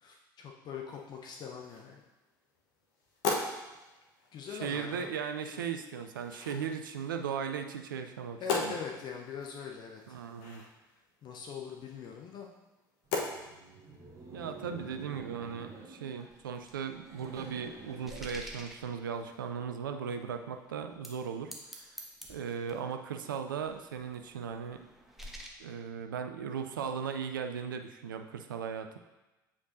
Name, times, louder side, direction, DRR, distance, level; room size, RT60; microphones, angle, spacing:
voice 1, 0.0-2.0 4.3-5.1 5.5-5.6 8.4-10.2 11.2-12.5, left 6 dB, 40° left, 1 dB, 0.7 m, -42 dB
sound 1, 0.9-15.8, left 3 dB, 60° left, 1.0 m, -42 dB
voice 2, 4.5-8.7 10.1-10.6 14.3-21.8 22.3-24.9 25.6-29.0, right 7 dB, 75° right, 7 dB, 0.4 m, -37 dB
Laughter, 13.1-19.3, right 3 dB, 30° right, 1.1 m, -50 dB
sound 2, 16.2-19.5 20.1-20.2 20.9-21.2 21.5-22.9 23.6-25.5, equal, ahead, 1.0 m, -49 dB
8.2 x 5.0 x 2.6 m, 1.1 s
figure-of-eight pair, 65°, 11 cm